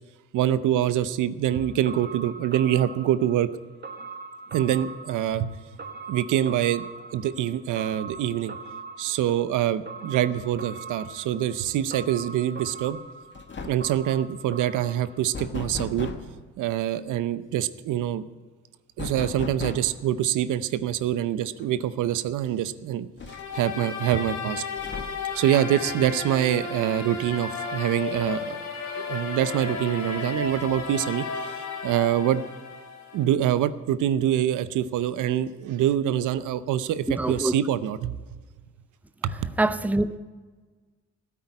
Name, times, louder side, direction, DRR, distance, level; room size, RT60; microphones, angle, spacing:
voice 1, 0.3-3.5 4.5-5.5 6.1-6.9 7.1-8.5 9.0-13.0 13.7-16.1 16.6-18.2 19.0-23.1 23.5-24.6 25.3-28.6 29.0-32.4 33.1-38.1 39.2-39.3, right 11 dB, 85° right, 0.7 m, -25 dB
sound 1, 1.4-15.6 15.9-16.0, right 4 dB, 35° right, 1.5 m, -42 dB
sound 2, 12.9-13.1 13.3-14.0 15.3-16.3 19.0-20.0 21.6-21.7 22.1-22.2 23.2-23.8 24.8-25.4, left 4 dB, 40° left, 1.7 m, -36 dB
sound 3, 23.3-33.2, left 5 dB, 65° left, 3.2 m, -34 dB
voice 2, 37.2-37.5 39.6-40.2, right 2 dB, 5° right, 0.6 m, -24 dB
14.0 x 8.6 x 9.7 m
cardioid pair, 90°, 30 cm